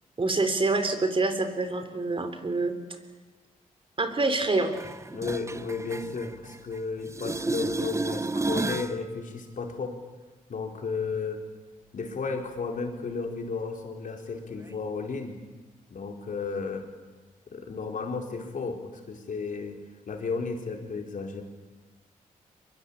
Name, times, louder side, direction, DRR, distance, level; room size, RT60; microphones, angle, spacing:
voice 1, 0.2-2.7 4.0-4.7, right 3 dB, 35° right, 9 dB, 3.5 m, -26 dB
sound 1, 4.7-6.8 7.1-9.0 14.7-14.8, right 2 dB, 20° right, 0.7 m, -32 dB
voice 2, 5.1-10.0 10.5-11.4 11.9-15.4 15.9-16.9 17.5-21.4, left 4 dB, 65° left, 3 dB, 4.5 m, -33 dB
23.0 x 22.5 x 8.8 m, 1.2 s
cardioid pair, 70°, 15 cm